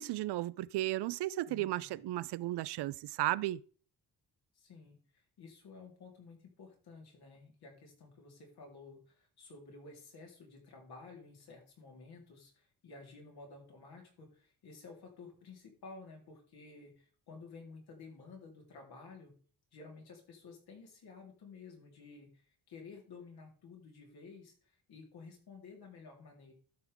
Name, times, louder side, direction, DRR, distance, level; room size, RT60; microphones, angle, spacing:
voice 1, 0.0-3.6, right 16 dB, 90° right, 0.5 m, -34 dB
voice 2, 1.5-2.0 4.5-19.3 19.7-22.4 22.7-26.5, left 4 dB, 75° left, 3.8 m, -53 dB
12.5 x 6.3 x 3.6 m
wide cardioid pair, 165°, 39 cm